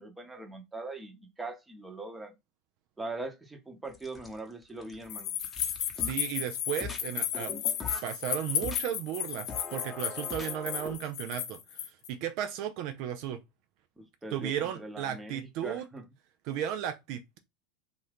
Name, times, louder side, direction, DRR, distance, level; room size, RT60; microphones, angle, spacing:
voice 1, 0.0-2.3 3.0-5.3 14.0-16.0, right 2 dB, 10° right, 0.9 m, -41 dB
sound 1, 3.9-4.5 4.8-6.3 6.8-7.0 7.3-8.1 8.6-8.8 9.5-11.0, left 5 dB, 15° left, 0.9 m, -41 dB
sound 2, 5.1-12.1, left 10 dB, 60° left, 0.7 m, -34 dB
voice 2, 6.0-7.5 8.0-13.4 14.3-15.9 16.4-17.4, right 10 dB, 60° right, 0.4 m, -35 dB
2.6 x 2.5 x 3.4 m
hypercardioid pair, 85°, 0 cm